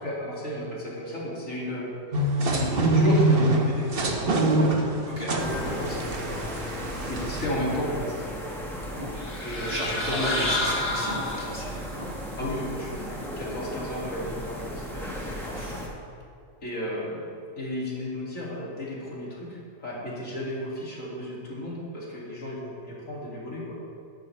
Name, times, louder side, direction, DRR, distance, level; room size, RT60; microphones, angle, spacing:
voice 1, 0.0-1.9 2.5-4.5 5.3-6.5 7.1-8.1 9.4-10.5 12.4-15.3 16.6-17.3 17.6-23.8, left 1 dB, 70° left, -5 dB, 2.9 m, -33 dB
sound 1, 2.1-7.5, right 1 dB, 45° right, 1.2 m, -24 dB
sound 2, 5.4-15.9, equal, ahead, 1.5 m, -36 dB
sound 3, 9.2-11.8, left 1 dB, 45° left, 2.1 m, -29 dB
voice 2, 9.5-12.1 15.4-15.9, right 1 dB, 30° right, -5 dB, 2.3 m, -35 dB
12.0 x 12.0 x 3.3 m, 2.3 s
omnidirectional pair, 1.4 m